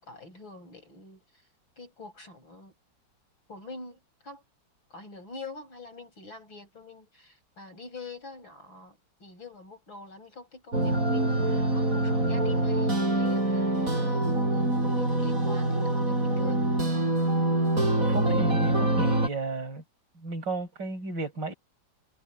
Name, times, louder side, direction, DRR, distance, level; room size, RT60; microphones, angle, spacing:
voice 1, 0.0-1.2 1.8-2.7 3.5-4.0 4.2-4.4 4.9-16.6, left 3 dB, 80° left, 8.4 m, -45 dB
sound 1, 10.7-19.3, right 2 dB, 40° right, 7.7 m, -25 dB
voice 2, 18.0-19.8 20.2-21.5, right 2 dB, 60° right, 6.6 m, -34 dB
omnidirectional pair, 2.1 m